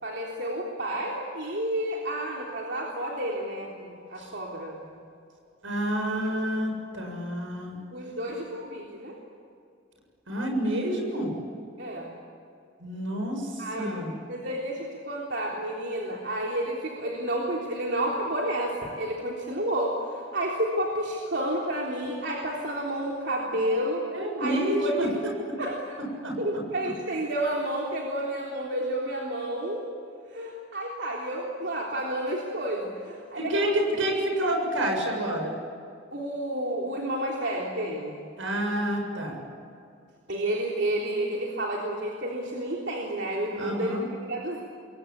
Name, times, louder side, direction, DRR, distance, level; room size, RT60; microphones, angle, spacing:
voice 1, 0.0-4.9 6.2-6.3 7.9-9.2 11.8-12.1 13.6-14.0 14.3-24.1 24.4-25.1 25.6-26.0 26.4-29.9 30.3-34.0 36.1-38.2 40.3-44.6, right 1 dB, 60° right, -2 dB, 3.6 m, -30 dB
voice 2, 5.6-7.8 10.3-11.3 12.8-14.1 24.1-25.1 26.2-26.3 33.4-35.6 38.4-39.4 43.6-44.0, right 1 dB, 80° right, 2 dB, 7.5 m, -28 dB
27.5 x 22.5 x 8.7 m, 2.4 s
head